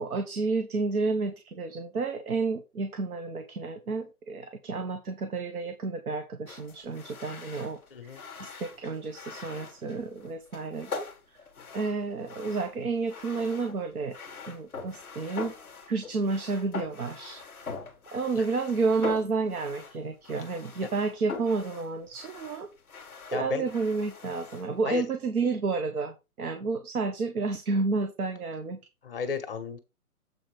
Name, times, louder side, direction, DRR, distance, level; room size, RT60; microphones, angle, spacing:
voice 1, 0.0-11.1 11.7-14.2 14.5-15.5 15.9-17.4 18.1-22.7 23.3-28.8, right 4 dB, 75° right, 7 dB, 1.4 m, -30 dB
sound 1, 6.5-24.8, left 5 dB, ahead, 0.6 m, -43 dB
voice 2, 7.9-8.2 18.3-18.4 23.3-23.7 24.9-25.0 29.0-29.8, left 6 dB, 40° left, 8 dB, 1.0 m, -33 dB
7.6 x 4.6 x 4.9 m, 0.26 s
hypercardioid pair, 165°, 44 cm